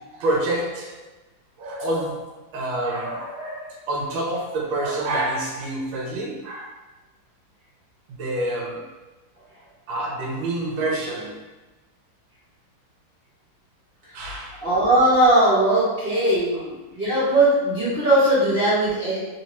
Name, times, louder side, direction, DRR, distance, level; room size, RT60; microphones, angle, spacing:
voice 1, 0.1-1.0 1.6-6.8 8.1-9.0 9.9-11.5 14.1-14.6 15.8-15.9 16.5-16.7, right 1 dB, 75° right, -3 dB, 1.3 m, -28 dB
voice 2, 14.6-19.2, right 1 dB, 45° right, -10 dB, 0.7 m, -19 dB
3.3 x 2.7 x 3.0 m, 1.1 s
omnidirectional pair, 2.3 m